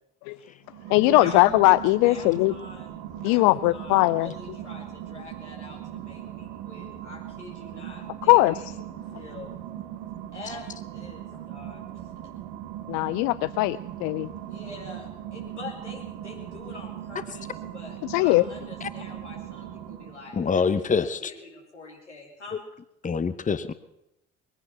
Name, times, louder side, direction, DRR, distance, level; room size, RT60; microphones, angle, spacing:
sound 1, 0.6-20.4, right 11 dB, 65° right, 1.4 m, -39 dB
voice 1, 0.9-2.5 3.2-4.3 8.2-8.5 12.9-14.3 18.1-18.4, left 19 dB, 60° left, 16 dB, 0.5 m, -20 dB
voice 2, 2.0-2.9 3.2-8.6 9.1-9.5 10.3-10.7 10.9-11.8 14.5-20.6 21.0-22.6, left 3 dB, 85° left, -2 dB, 2.9 m, -44 dB
voice 3, 20.3-21.3 23.0-23.7, left 5 dB, 20° left, 13 dB, 0.9 m, -25 dB
22.0 x 10.0 x 6.0 m, 0.86 s
figure-of-eight pair, 45°, 34 cm